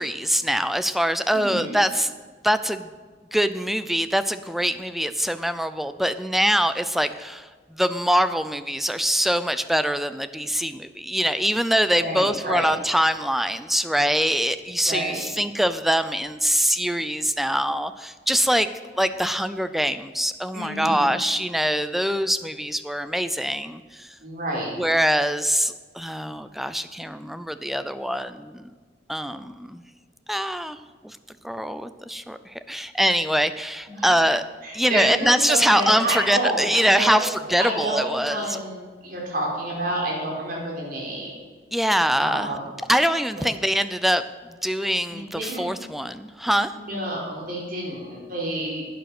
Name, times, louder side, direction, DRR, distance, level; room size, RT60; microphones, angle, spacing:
voice 1, 0.0-2.1 2.4-2.9 3.3-18.7 18.9-24.2 24.8-28.7 29.1-29.8 30.3-30.8 31.0-31.2 31.4-34.4 34.7-38.6 41.7-42.5 42.9-46.7, equal, ahead, 12 dB, 0.5 m, -23 dB
voice 2, 1.3-1.7 12.0-12.7 14.9-15.3 20.5-21.0 24.2-24.7 33.9-34.1 34.6-37.3 37.6-41.3 42.2-42.7 43.4-43.5 45.1-45.7 46.7-48.9, right 1 dB, 55° right, -2 dB, 4.0 m, -29 dB
11.5 x 9.5 x 6.0 m, 1.4 s
head